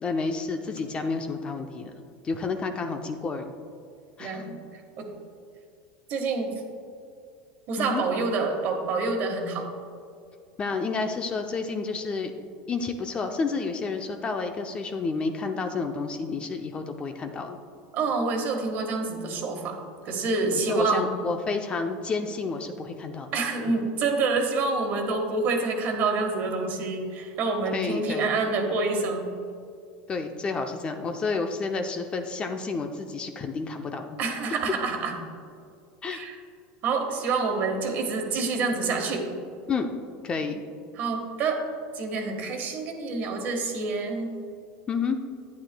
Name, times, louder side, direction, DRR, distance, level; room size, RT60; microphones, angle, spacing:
voice 1, 0.0-1.9 2.2-3.4 4.2-4.4 7.8-8.0 10.6-12.3 12.7-17.6 20.5-23.3 27.7-28.3 30.1-34.1 36.0-36.2 39.7-39.9 40.2-40.6 44.9-45.2, left 4 dB, 25° left, 5 dB, 0.5 m, -30 dB
voice 2, 4.2-4.6 5.0-5.1 6.1-6.6 7.7-9.7 17.9-19.8 20.0-21.1 23.3-29.3 34.2-35.1 36.1-36.4 36.8-39.2 40.9-41.6 41.9-44.3, right 3 dB, 45° right, 3 dB, 1.4 m, -27 dB
11.5 x 9.4 x 2.2 m, 2.4 s
supercardioid pair, 135°, 4 cm